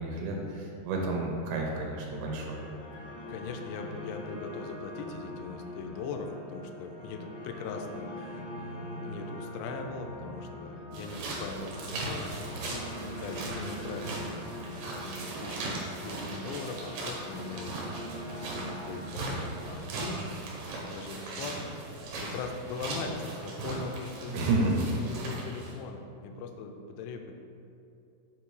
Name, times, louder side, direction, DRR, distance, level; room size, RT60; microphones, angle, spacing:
voice 1, 0.0-2.6 24.3-24.9, right 2 dB, 90° right, -1 dB, 3.0 m, -30 dB
sound 1, 1.7-19.7, left 1 dB, 60° left, 1.6 m, -43 dB
voice 2, 3.3-14.5 15.0-17.8 18.3-20.2 20.8-21.7 22.2-27.3, left 4 dB, 85° left, 5 dB, 2.7 m, -40 dB
sound 2, 10.9-25.8, right 2 dB, 70° right, 2.7 m, -38 dB
7.4 x 3.9 x 4.7 m, 2.7 s
omnidirectional pair, 4.8 m